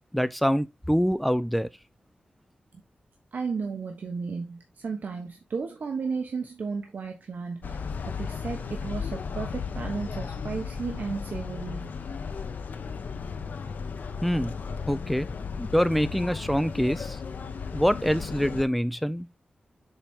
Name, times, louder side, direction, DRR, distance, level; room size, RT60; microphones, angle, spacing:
voice 1, 0.1-1.7 14.2-14.5 14.9-15.3 15.6-17.2 17.7-19.3, equal, ahead, 0.5 m, -25 dB
voice 2, 3.3-7.8 8.1-11.9, right 5 dB, 70° right, 1.0 m, -34 dB
sound 1, 7.6-18.6, left 5 dB, 80° left, 0.9 m, -35 dB
6.9 x 4.4 x 3.6 m
wide cardioid pair, 100°, 3 cm